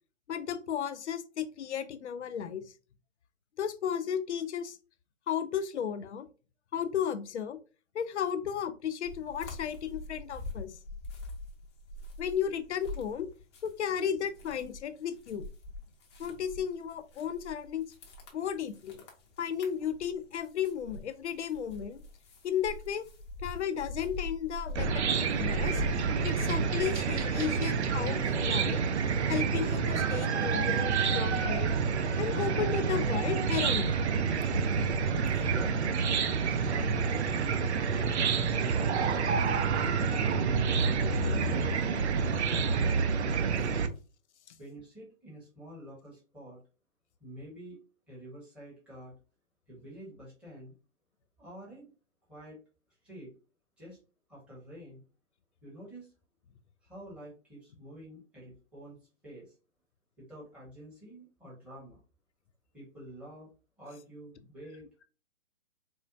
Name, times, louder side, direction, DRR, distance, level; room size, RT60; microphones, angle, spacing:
voice 1, 0.3-2.7 3.6-4.8 5.3-6.3 6.7-7.6 7.9-10.8 12.2-13.3 13.6-15.5 16.2-17.9 18.3-19.0 19.4-22.0 22.4-23.1 23.4-25.8 26.2-28.8 29.3-31.7 32.2-34.0, left 8 dB, 60° left, 0.5 m, -34 dB
sound 1, 9.0-13.9 14.2-27.2, left 2 dB, 20° left, 0.6 m, -42 dB
Chicken rooster / Cricket, 24.8-43.9, right 5 dB, 60° right, 0.6 m, -28 dB
voice 2, 35.5-36.1 36.4-37.6 37.9-40.2 41.2-43.2 44.6-46.6 47.2-47.8 48.1-49.1 49.7-50.7 51.4-51.9 52.3-52.6 53.0-53.3 53.8-54.0 54.3-55.0 55.6-56.1 56.8-59.0 59.2-59.5 60.2-62.0 62.7-63.5 63.8-64.9, equal, 5° right, 1.0 m, -48 dB
4.3 x 2.1 x 2.5 m
hypercardioid pair, 145°, 38 cm